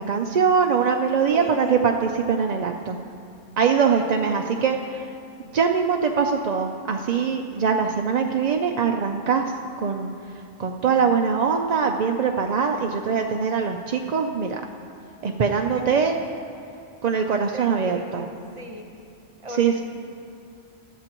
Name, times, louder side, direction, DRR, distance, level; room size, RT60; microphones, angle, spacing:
voice 1, 0.0-3.0 3.6-5.1 5.5-9.5 9.8-10.1 10.6-14.6 15.2-16.2 17.0-18.2 19.6-19.7, right 6 dB, 50° right, 3 dB, 0.5 m, -22 dB
voice 2, 1.3-1.9 3.9-4.4 15.7-16.0 17.5-18.9 19.4-19.8, left 1 dB, 30° right, 2 dB, 1.2 m, -38 dB
18.5 x 12.5 x 3.0 m, 2.4 s
omnidirectional pair, 1.2 m